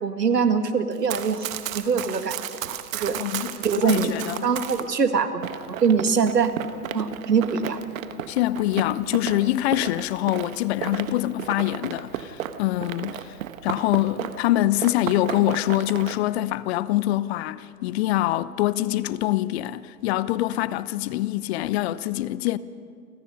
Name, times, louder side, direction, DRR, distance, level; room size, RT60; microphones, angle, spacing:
voice 1, 0.0-1.5 1.7-2.4 2.6-3.2 3.6-4.1 4.4-6.5 6.9-7.8 14.2-14.3, right 6 dB, 85° right, 2.0 m, -23 dB
Run, 0.9-4.9 5.4-14.5 14.8-16.2, right 10 dB, 55° right, 1.5 m, -34 dB
voice 2, 3.2-4.5 8.3-13.4 13.6-22.6, left 15 dB, 40° left, 0.9 m, -25 dB
29.5 x 25.0 x 5.5 m
figure-of-eight pair, 105°, 47 cm